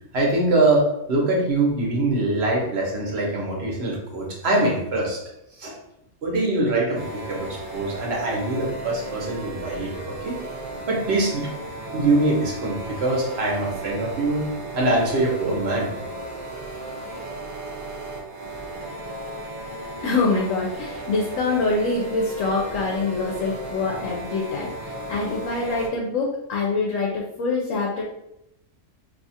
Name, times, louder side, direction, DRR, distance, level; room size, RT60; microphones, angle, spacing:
voice 1, 0.1-5.2 5.6-5.7 6.2-9.9 10.2-10.4 10.9-11.6 11.9-14.5 14.7-15.9, right 2 dB, 60° right, -2 dB, 1.1 m, -23 dB
sound 1, 6.9-25.9, right 1 dB, 40° right, 0.5 m, -35 dB
voice 2, 20.0-28.0, left 3 dB, 80° left, -1 dB, 1.0 m, -25 dB
2.8 x 2.4 x 4.1 m, 0.84 s
omnidirectional pair, 1.3 m